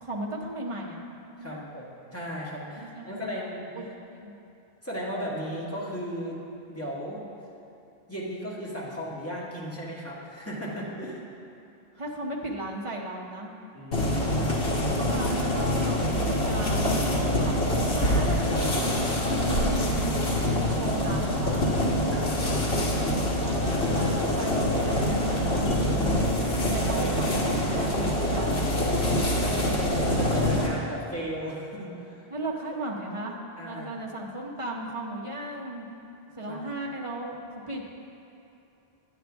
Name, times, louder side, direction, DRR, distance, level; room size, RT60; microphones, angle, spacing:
voice 1, 0.0-1.6 2.8-3.8 4.2-4.3 12.0-13.5 14.9-18.9 19.5-21.7 23.3-26.4 26.7-28.6 32.3-35.9 36.4-37.8, right 1 dB, 30° right, -1 dB, 0.9 m, -36 dB
voice 2, 1.4-3.7 4.8-6.4 6.7-7.2 8.1-11.2 13.7-14.6 22.1-22.6 28.9-32.3 33.6-33.9 36.3-36.6, equal, 15° left, -7 dB, 1.6 m, -36 dB
sound 1, 13.9-30.7, left 1 dB, 65° left, 1.6 m, -25 dB
9.3 x 9.1 x 3.5 m, 2.8 s
omnidirectional pair, 1.1 m